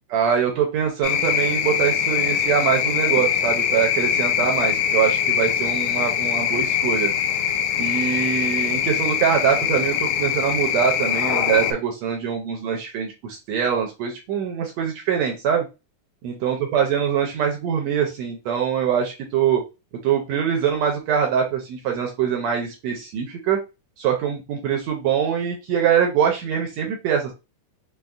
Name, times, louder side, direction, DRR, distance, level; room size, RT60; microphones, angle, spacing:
voice 1, 0.1-7.1 7.8-15.7 16.2-19.6 20.0-23.6 24.0-27.3, right 8 dB, 80° right, 2 dB, 1.6 m, -23 dB
sound 1, 1.0-11.7, left 9 dB, 80° left, 1.9 m, -23 dB
5.3 x 2.0 x 2.3 m, 0.27 s
omnidirectional pair, 3.5 m